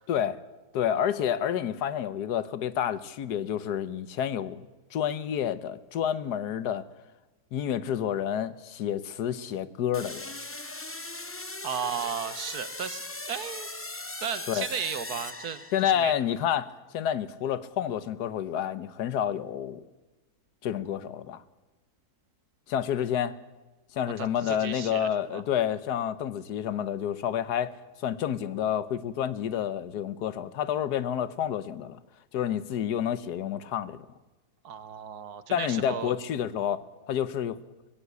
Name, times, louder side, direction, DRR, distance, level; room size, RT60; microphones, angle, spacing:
voice 1, 0.1-0.4 0.7-6.8 7.5-10.3 14.5-14.7 15.7-19.8 20.6-21.4 22.7-23.3 23.9-27.7 28.0-32.0 32.3-34.0 35.5-36.8 37.1-37.6, left 9 dB, 85° left, 1.4 m, -29 dB
sound 1, 9.9-16.1, left 2 dB, 20° left, 0.3 m, -39 dB
voice 2, 11.6-13.7 14.2-16.2 24.2-25.4 34.6-36.1, right 7 dB, 75° right, 1.7 m, -35 dB
19.5 x 16.5 x 8.4 m
omnidirectional pair, 1.7 m